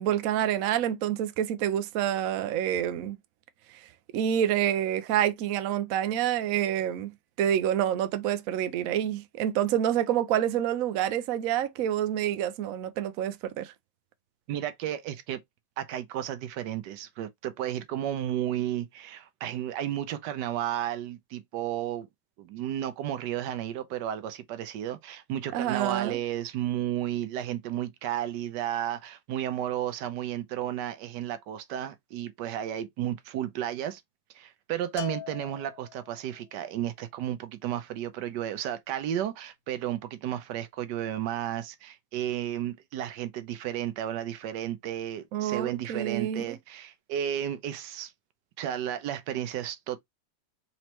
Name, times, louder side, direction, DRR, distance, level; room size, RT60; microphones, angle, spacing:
voice 1, 0.0-3.2 4.1-7.1 7.4-13.7 25.5-26.2 45.3-46.6, right 10 dB, 65° right, 0.9 m, -27 dB
voice 2, 14.5-15.4 15.8-22.1 22.4-34.0 34.3-48.1 48.6-50.0, right 11 dB, 80° right, 1.2 m, -33 dB
Bell, 35.0-36.3, left 12 dB, 55° left, 1.0 m, -41 dB
4.3 x 3.0 x 2.9 m
omnidirectional pair, 1.8 m